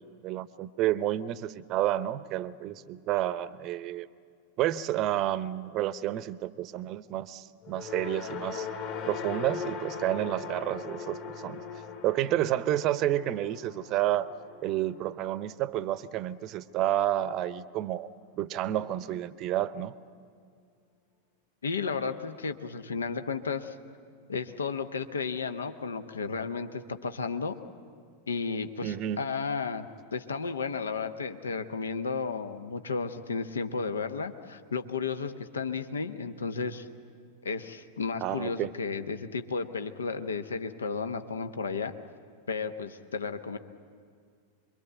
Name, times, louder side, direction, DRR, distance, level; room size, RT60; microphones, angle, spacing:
voice 1, 0.0-4.1 4.6-8.7 9.1-11.6 12.0-14.3 14.6-18.1 18.4-19.9 28.8-29.3 38.2-38.7, right 13 dB, 35° right, 18 dB, 0.7 m, -30 dB
sound 1, 7.6-16.0, left 5 dB, 45° left, 3.5 m, -40 dB
voice 2, 21.6-23.7 24.3-27.6 28.3-29.9 30.1-36.9 37.4-41.9 42.5-43.6, left 5 dB, 70° left, 9 dB, 1.0 m, -33 dB
25.5 x 23.0 x 8.1 m, 2.1 s
figure-of-eight pair, 90°, 0 cm